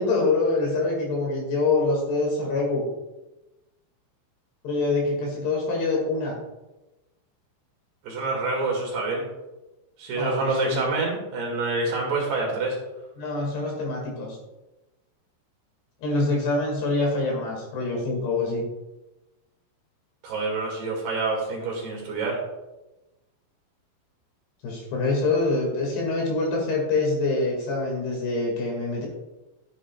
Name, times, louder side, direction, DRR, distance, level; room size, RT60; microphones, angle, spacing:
voice 1, 0.0-2.8 4.6-6.3 10.2-10.9 13.2-14.4 16.0-18.6 24.6-29.1, left 3 dB, 60° left, -2 dB, 3.8 m, -25 dB
voice 2, 8.0-9.3 10.0-12.8 20.2-22.4, right 3 dB, 60° right, -2 dB, 3.7 m, -27 dB
14.0 x 8.4 x 2.3 m, 1.0 s
omnidirectional pair, 5.9 m